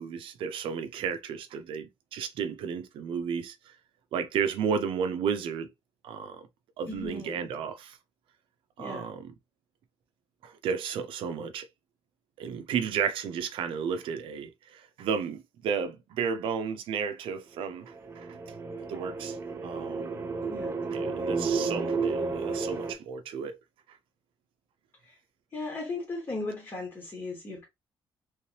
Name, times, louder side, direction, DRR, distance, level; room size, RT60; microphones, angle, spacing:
voice 1, 0.0-3.8 4.1-5.7 6.0-6.5 6.8-8.0 8.8-9.3 10.4-11.7 12.4-18.3 18.9-19.4 19.6-20.1 20.9-23.6 23.9-24.0, right 6 dB, 80° right, 0.6 m, -33 dB
voice 2, 6.9-7.3 8.8-9.1 20.5-21.3 25.0-25.2 25.5-27.6, left 2 dB, 30° left, 1.2 m, -37 dB
sound 1, 17.8-22.9, right 4 dB, 30° right, 0.7 m, -32 dB
3.2 x 3.2 x 2.8 m
cardioid pair, 150°, 9 cm